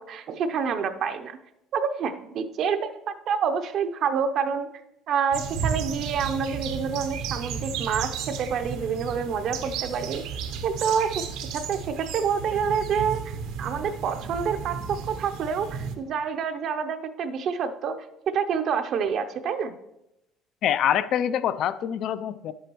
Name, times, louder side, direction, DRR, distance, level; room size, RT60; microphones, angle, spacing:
voice 1, 0.0-1.4 1.7-4.7 5.1-10.2 10.6-11.3 11.5-19.7, right 6 dB, 55° right, 8 dB, 0.6 m, -28 dB
sound 1, 5.3-16.0, right 6 dB, 80° right, 1.0 m, -33 dB
voice 2, 20.6-22.5, left 10 dB, 55° left, 14 dB, 0.4 m, -25 dB
10.5 x 8.3 x 3.0 m, 0.89 s
cardioid pair, 115°, 0 cm